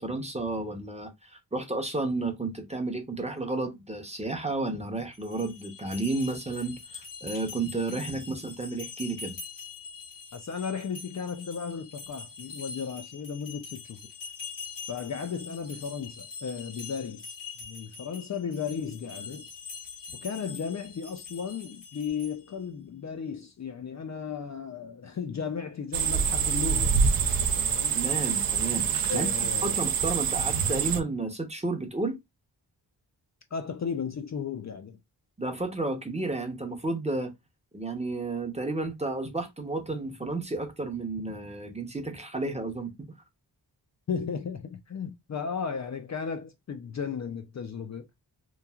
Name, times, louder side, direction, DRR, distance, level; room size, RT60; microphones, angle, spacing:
voice 1, 0.0-9.4 27.9-32.2 35.4-37.3 37.7-42.9, right 2 dB, 15° right, 0.7 m, -32 dB
sound 1, 5.1-22.6, left 5 dB, 90° left, 1.4 m, -44 dB
voice 2, 10.3-14.0 14.9-19.5 20.1-27.0 27.5-28.0 29.1-29.8 33.5-35.0 44.1-48.1, left 6 dB, 45° left, 0.4 m, -35 dB
sound 2, 25.9-31.0, right 6 dB, 55° right, 0.5 m, -26 dB
3.1 x 2.3 x 2.3 m
wide cardioid pair, 85°, 42 cm